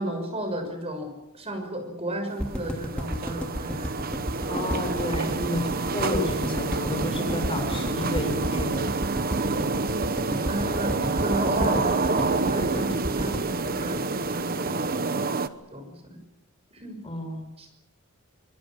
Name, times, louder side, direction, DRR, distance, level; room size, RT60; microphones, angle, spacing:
voice 1, 0.0-3.9 5.2-5.4 10.5-14.7 15.7-16.2 16.7-17.0 17.6-17.7, right 1 dB, 30° right, 6 dB, 6.1 m, -33 dB
sound 1, 2.3-15.5, right 3 dB, 45° right, 1.1 m, -28 dB
sound 2, 2.4-14.6 14.9-15.0 15.1-15.2, equal, 5° left, 2.4 m, -32 dB
voice 2, 4.5-8.9 17.0-17.4, left 1 dB, 25° left, 4 dB, 6.6 m, -30 dB
25.0 x 22.5 x 7.3 m, 0.87 s
head